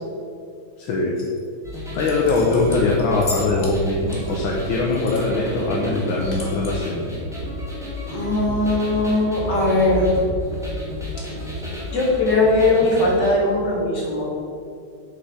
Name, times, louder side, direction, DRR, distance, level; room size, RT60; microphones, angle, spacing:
voice 1, 0.8-1.1 1.9-7.1, left 3 dB, 75° left, -2 dB, 1.8 m, -22 dB
sound 1, 1.2-1.4 1.9-3.8 4.1-5.3 5.5-5.6 6.0-6.7, left 3 dB, 30° left, 1.4 m, -36 dB
sound 2, 1.6-13.3, left 1 dB, ahead, 2.1 m, -31 dB
voice 2, 8.1-10.1 11.9-14.3, left 2 dB, 60° left, -5 dB, 3.0 m, -19 dB
7.7 x 6.6 x 5.8 m, 2.4 s
omnidirectional pair, 2.2 m